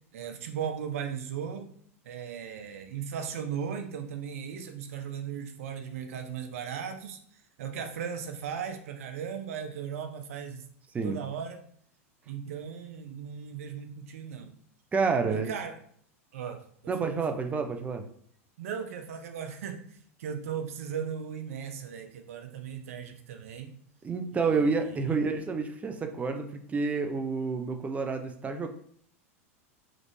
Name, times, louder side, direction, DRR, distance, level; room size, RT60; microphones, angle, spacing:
voice 1, 0.1-1.7 2.0-7.2 7.6-10.7 11.0-11.6 12.3-14.5 15.3-15.8 16.3-16.6 17.0-17.4 18.6-19.9 20.2-23.7 24.3-25.1, right 7 dB, 75° right, 7 dB, 0.6 m, -37 dB
voice 2, 14.9-15.5 16.9-18.1 24.0-28.7, right 4 dB, 20° right, 6 dB, 0.5 m, -29 dB
3.9 x 3.2 x 3.2 m, 0.62 s
hypercardioid pair, 100°, 8 cm